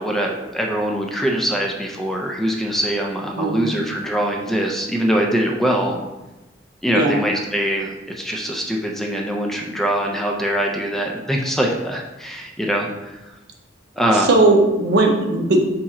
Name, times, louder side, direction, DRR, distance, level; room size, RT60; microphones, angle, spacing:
voice 1, 0.0-6.0 6.8-13.2 14.0-14.3, right 1 dB, ahead, 0 dB, 0.4 m, -23 dB
voice 2, 3.4-3.7 6.9-7.2 14.3-15.6, right 2 dB, 60° right, 2 dB, 0.6 m, -17 dB
4.2 x 2.9 x 3.6 m, 1.0 s
head